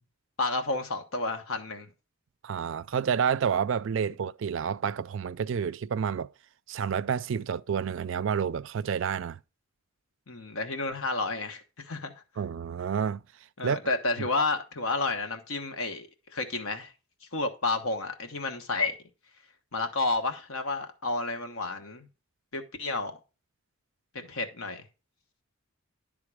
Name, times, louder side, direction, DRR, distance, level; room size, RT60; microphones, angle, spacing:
voice 1, 0.4-1.9 10.3-12.1 13.6-16.9 17.3-19.0 19.7-22.1 22.5-23.1 24.3-24.8, left 3 dB, 75° left, 1.2 m, -31 dB
voice 2, 2.4-6.3 6.7-9.4 12.4-13.2 13.6-13.9, right 7 dB, 60° right, 0.3 m, -29 dB
11.0 x 3.8 x 4.8 m
head